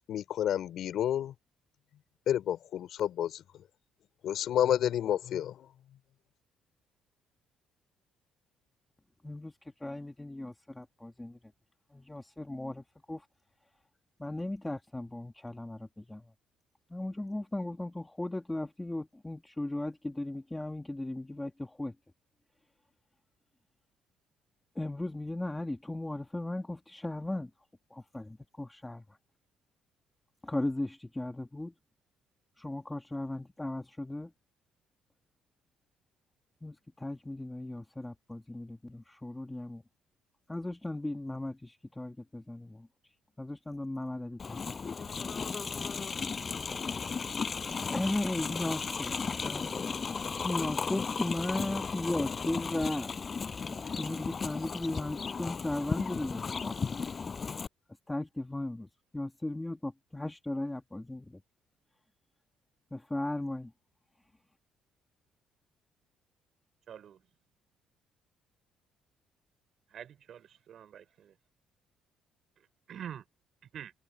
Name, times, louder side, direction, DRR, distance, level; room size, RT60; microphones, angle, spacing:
voice 1, 0.1-1.3 2.3-3.6 4.2-5.7, left 10 dB, 55° left, 4.0 m, -30 dB
voice 2, 9.2-11.4 11.9-13.3 14.2-16.3 16.9-22.0 24.8-27.5 27.9-29.0 30.4-31.7 32.6-34.3 36.6-39.8 40.5-44.6 47.9-49.9 50.4-57.0 58.1-58.9 59.1-61.4 62.9-63.7, left 1 dB, 5° left, 1.7 m, -37 dB
Livestock farm animals working animals, 44.4-57.7, left 5 dB, 25° left, 6.5 m, -35 dB
voice 3, 66.9-67.2 69.9-71.3 72.9-73.2 73.7-73.9, right 9 dB, 45° right, 5.0 m, -45 dB
cardioid pair, 165°, 0 cm